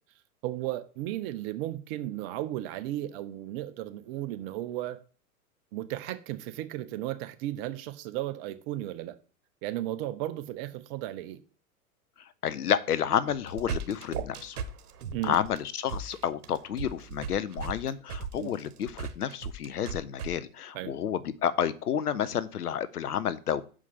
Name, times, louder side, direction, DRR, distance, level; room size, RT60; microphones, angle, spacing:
voice 1, 0.4-5.0 5.7-9.2 9.6-11.4 15.1-15.4 18.4-18.5 20.7-20.9, right 14 dB, 40° right, 0.9 m, -35 dB
voice 2, 12.2-14.6 15.2-23.6, left 9 dB, 85° left, 0.9 m, -30 dB
sound 1, 13.3-20.3, right 5 dB, 80° right, 1.2 m, -37 dB
6.3 x 5.0 x 5.7 m
hypercardioid pair, 115°, 45 cm